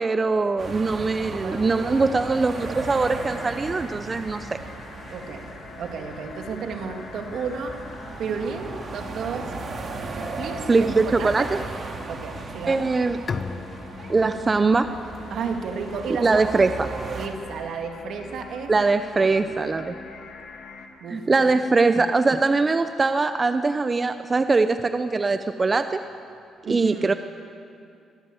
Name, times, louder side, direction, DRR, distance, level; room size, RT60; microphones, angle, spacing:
voice 1, 0.0-4.6 10.7-11.6 12.7-13.2 14.1-14.9 16.2-16.9 18.7-19.9 21.1-26.0 26.6-27.1, right 3 dB, 30° right, 9 dB, 0.8 m, -22 dB
sound 1, 0.6-17.3, right 3 dB, 45° right, 2.6 m, -37 dB
voice 2, 1.0-2.1 5.1-7.8 8.2-9.5 10.4-11.5 12.1-12.9 15.3-16.5 17.1-18.8 19.2-19.3 21.0-21.5 26.6-27.2, right 5 dB, 70° right, 4 dB, 2.3 m, -33 dB
sound 2, 1.5-20.9, left 4 dB, 75° left, 2.3 m, -45 dB
Bowed string instrument, 13.3-16.8, left 5 dB, 45° left, 1.0 m, -37 dB
22.0 x 16.5 x 8.0 m, 2.5 s
cardioid pair, 90°, 0 cm